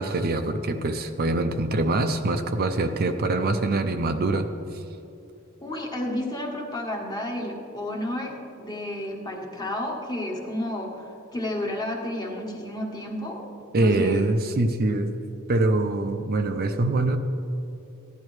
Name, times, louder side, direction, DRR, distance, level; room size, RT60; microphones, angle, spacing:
voice 1, 0.0-4.5 13.7-15.2 15.5-17.2, right 2 dB, 45° right, 7 dB, 0.5 m, -24 dB
voice 2, 5.6-13.5 13.7-14.3, left 1 dB, 20° left, 0 dB, 1.4 m, -31 dB
15.5 x 10.5 x 3.2 m, 2.9 s
head